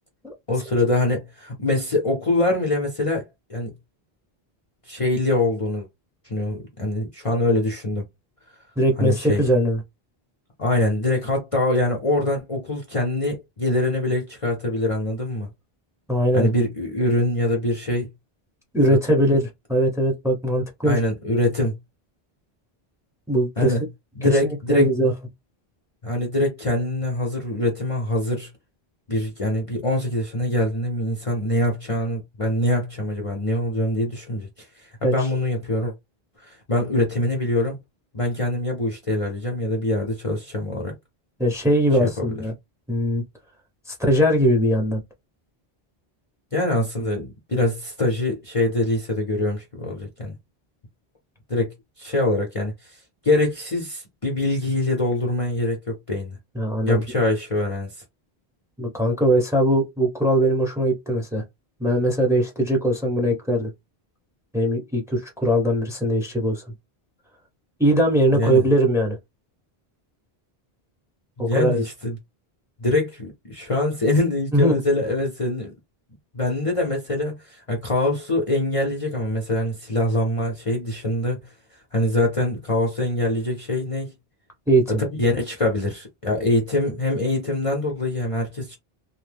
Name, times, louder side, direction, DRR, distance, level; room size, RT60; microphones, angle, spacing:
voice 1, 0.5-3.7 4.9-5.9 6.2-8.0 9.0-9.4 10.6-15.5 16.3-18.1 20.8-21.7 23.6-23.8 24.2-24.9 26.0-28.5 29.1-35.9 36.4-37.8 38.1-40.9 42.0-42.3 46.5-50.4 51.5-53.0 53.2-56.4 56.9-57.9 68.3-68.7 71.4-72.2 72.8-75.7 76.3-81.4 81.9-84.1 85.0-88.8, left 1 dB, 35° left, 0.7 m, -24 dB
voice 2, 8.8-9.8 16.1-16.5 18.7-21.0 23.3-23.7 24.2-25.1 35.0-35.1 41.4-42.5 42.9-43.2 43.9-45.0 56.5-57.0 58.8-61.4 61.8-63.7 64.5-66.6 67.8-69.2 71.4-71.8 74.5-74.8 84.7-84.8, equal, 5° right, 0.8 m, -20 dB
2.7 x 2.1 x 3.3 m
omnidirectional pair, 1.0 m